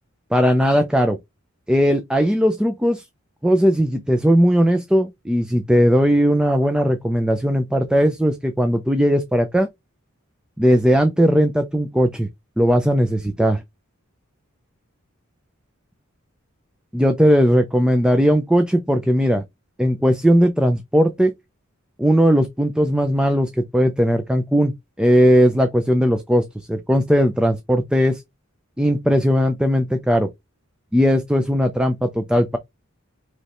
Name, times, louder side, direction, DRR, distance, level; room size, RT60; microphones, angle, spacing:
voice 1, 0.3-1.2 1.7-3.0 3.4-9.7 10.6-12.3 12.6-13.6 16.9-19.4 19.8-21.3 22.0-24.7 25.0-28.2 28.8-30.3 30.9-32.6, equal, 5° right, 0.5 m, -18 dB
5.3 x 3.2 x 3.0 m
head